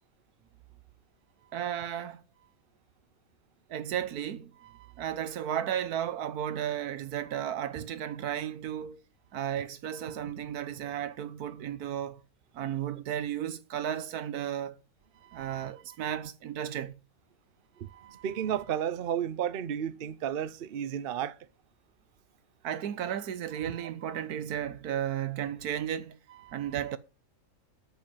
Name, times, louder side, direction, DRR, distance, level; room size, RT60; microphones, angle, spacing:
voice 1, 1.5-2.2 3.7-4.5 5.0-9.0 9.3-12.2 12.5-14.7 15.3-16.9 22.6-26.2 26.5-27.0, right 10 dB, 80° right, 1.4 m, -34 dB
voice 2, 15.2-15.7 16.0-16.2 17.8-21.4 23.6-23.7 24.1-24.2 26.5-26.9, right 9 dB, 50° right, 0.7 m, -34 dB
9.0 x 5.5 x 7.4 m
omnidirectional pair, 1.6 m